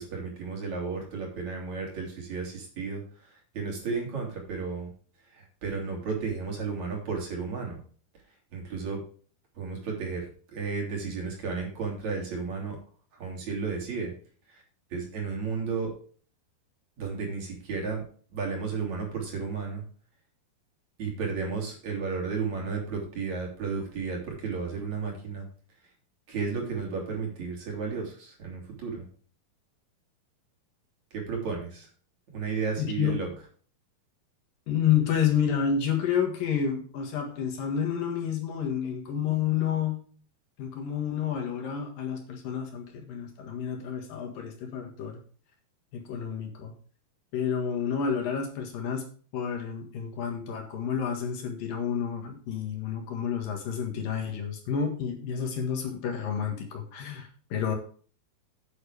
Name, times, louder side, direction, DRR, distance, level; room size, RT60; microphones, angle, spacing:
voice 1, 0.0-4.9 5.3-7.8 8.5-9.0 9.6-12.8 13.1-14.1 14.5-14.6 14.9-15.9 17.0-18.0 18.3-19.8 21.0-25.5 26.3-29.1 31.1-31.9 32.3-33.3, right 5 dB, 50° right, -1 dB, 4.4 m, -33 dB
voice 2, 32.8-33.2 34.7-40.0 40.6-45.2 45.9-46.7 47.3-49.1 49.3-57.8, left 8 dB, 65° left, 4 dB, 3.3 m, -29 dB
9.9 x 9.1 x 3.4 m, 0.42 s
omnidirectional pair, 4.4 m